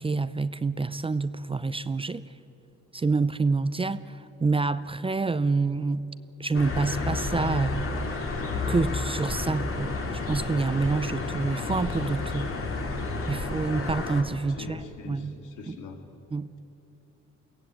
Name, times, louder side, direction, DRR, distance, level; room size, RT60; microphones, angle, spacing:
voice 1, 0.0-2.2 2.9-6.0 6.4-7.8 8.7-10.0 10.3-12.5 13.3-15.3 15.7-15.8 16.3-16.5, right 3 dB, 20° right, 14 dB, 0.5 m, -27 dB
sound 1, 6.5-14.2, left 3 dB, 45° left, 2.7 m, -31 dB
voice 2, 14.6-16.0, left 5 dB, 85° left, 4 dB, 2.3 m, -42 dB
22.0 x 16.5 x 8.9 m, 2.9 s
cardioid pair, 90°, 30 cm